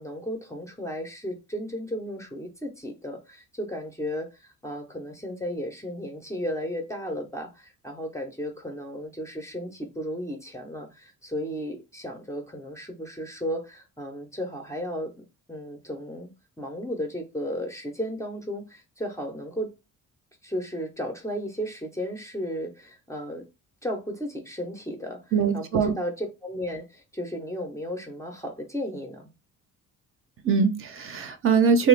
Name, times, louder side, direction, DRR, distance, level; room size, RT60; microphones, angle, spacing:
voice 1, 0.0-15.1 15.5-16.3 16.6-19.7 20.4-23.4 23.8-25.2 25.5-29.3, equal, 10° left, 0.4 m, -34 dB
voice 2, 25.3-25.9 30.4-31.9, right 6 dB, 45° right, 0.5 m, -22 dB
3.2 x 2.3 x 3.1 m
cardioid pair, 180°, 31 cm